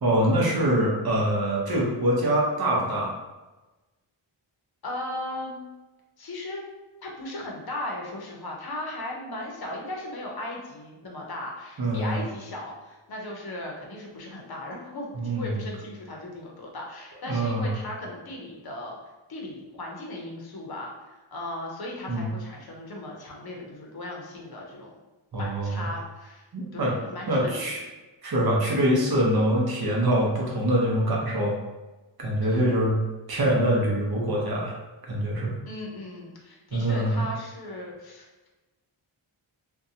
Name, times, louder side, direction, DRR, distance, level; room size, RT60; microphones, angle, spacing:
voice 1, 0.0-3.1 11.8-12.2 15.1-15.5 17.2-17.7 22.1-22.3 25.3-25.7 26.5-26.9 27.3-27.8 28.2-31.6 32.2-33.0 33.3-34.7 35.1-35.5 36.7-37.2, right 1 dB, 50° right, -3 dB, 0.7 m, -24 dB
voice 2, 4.8-5.7 6.2-6.6 7.0-19.0 19.3-24.9 25.4-26.5 26.7-27.8 32.4-32.7 35.7-38.5, left 1 dB, 50° left, -1 dB, 0.7 m, -37 dB
2.6 x 2.2 x 2.6 m, 1.1 s
wide cardioid pair, 120°, 50 cm